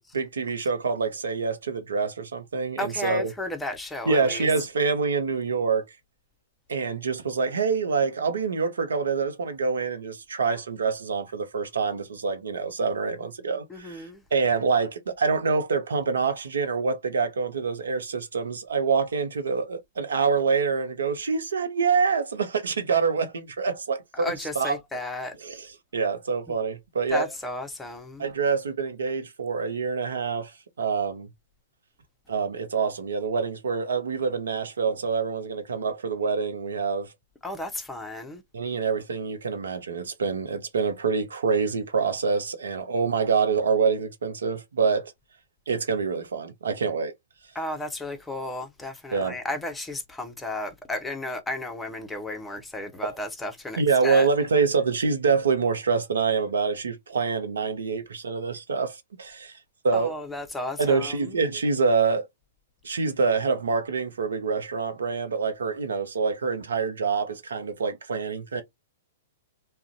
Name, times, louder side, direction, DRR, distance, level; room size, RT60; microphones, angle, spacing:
voice 1, 0.0-3.3 4.1-5.8 6.7-14.1 14.3-24.8 25.4-25.7 25.9-27.3 28.2-30.5 30.8-31.3 32.3-37.1 38.5-45.1 45.7-47.1 49.1-49.3 53.0-53.1 53.8-59.5 59.8-60.1 60.8-62.3 62.8-68.6, right 5 dB, 75° right, 0.6 m, -26 dB
voice 2, 2.8-4.5 13.7-14.2 24.2-25.4 26.5-26.6 27.1-28.3 37.4-38.4 47.5-54.3 59.9-61.4, left 2 dB, 10° left, 0.6 m, -33 dB
2.4 x 2.1 x 2.5 m
hypercardioid pair, 115°, 0 cm